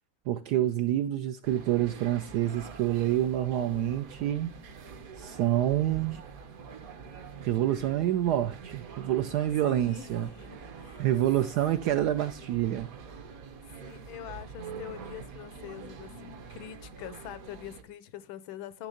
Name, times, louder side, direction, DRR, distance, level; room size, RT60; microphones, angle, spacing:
voice 1, 0.3-4.5 5.2-6.2 7.4-10.3 11.0-12.9, right 12 dB, 70° right, 1.0 m, -27 dB
sound 1, 1.4-17.8, right 5 dB, 55° right, 1.2 m, -45 dB
voice 2, 9.6-11.0 13.8-18.9, left 10 dB, 85° left, 1.6 m, -44 dB
10.5 x 3.5 x 6.4 m
omnidirectional pair, 2.1 m